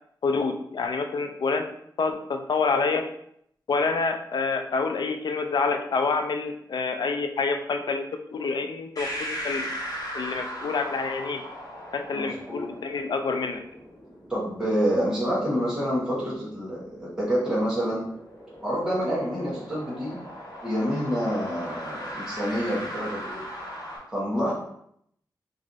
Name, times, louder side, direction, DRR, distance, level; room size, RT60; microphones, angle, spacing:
voice 1, 0.2-1.7 2.0-3.1 3.7-9.7 10.1-11.4 11.9-13.6, left 4 dB, 70° left, 6 dB, 0.4 m, -27 dB
sound 1, 9.0-24.0, equal, 50° left, 1.3 m, -39 dB
voice 2, 12.1-12.7 14.3-18.0 18.6-20.2 20.6-23.5 24.1-24.5, equal, 10° right, -7 dB, 1.1 m, -27 dB
3.1 x 2.5 x 3.9 m, 0.70 s
wide cardioid pair, 155°, 8 cm